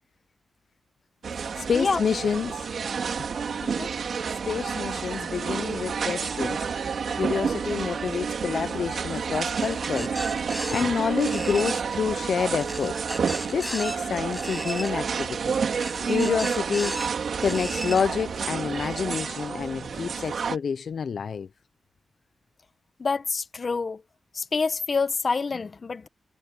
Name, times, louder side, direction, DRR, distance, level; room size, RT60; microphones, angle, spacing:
sound 1, 1.2-20.6, right 6 dB, 70° right, 3.5 m, -30 dB
voice 1, 1.6-2.7 4.4-6.7 6.9-13.0 13.5-15.5 16.0-17.0 17.4-21.5, left 6 dB, 70° left, 0.6 m, -28 dB
sound 2, 9.5-10.8 11.2-11.8 12.6-14.0 14.3-14.9 15.7-17.1 17.4-18.0, equal, 5° right, 7.5 m, -36 dB
voice 2, 23.0-24.0 24.3-26.1, left 4 dB, 50° left, 1.0 m, -27 dB
cardioid pair, 75°, 0 cm